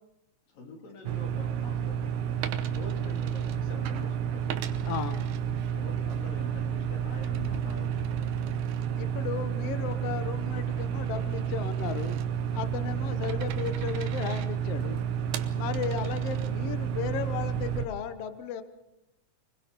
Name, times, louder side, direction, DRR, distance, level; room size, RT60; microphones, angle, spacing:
voice 1, 0.5-4.6 5.7-8.5, left 2 dB, 80° left, 2 dB, 4.8 m, -46 dB
sound 1, 1.0-17.9, right 8 dB, 70° right, 2.5 m, -31 dB
Coin (dropping), 2.4-4.0 4.5-6.1 6.5-16.9, right 10 dB, 90° right, 2.7 m, -45 dB
voice 2, 4.8-5.2 9.0-12.2 12.5-15.0 15.5-18.6, left 8 dB, 60° left, 10 dB, 1.8 m, -35 dB
26.5 x 20.5 x 5.4 m, 0.92 s
omnidirectional pair, 3.9 m